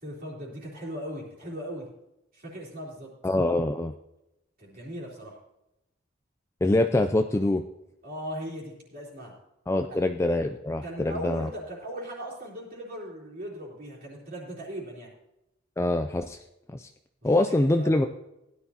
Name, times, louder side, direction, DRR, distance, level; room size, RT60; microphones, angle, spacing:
voice 1, 0.0-1.9 2.3-3.1 4.6-5.3 8.0-9.3 9.9-10.1 10.8-15.1 17.2-17.3 17.6-18.1, equal, 50° right, -6 dB, 3.6 m, -38 dB
voice 2, 3.2-3.9 6.6-7.6 9.7-11.5 15.8-16.4 16.7-16.9 17.2-18.1, left 2 dB, 15° left, 6 dB, 0.3 m, -24 dB
16.5 x 10.5 x 2.9 m, 0.89 s
head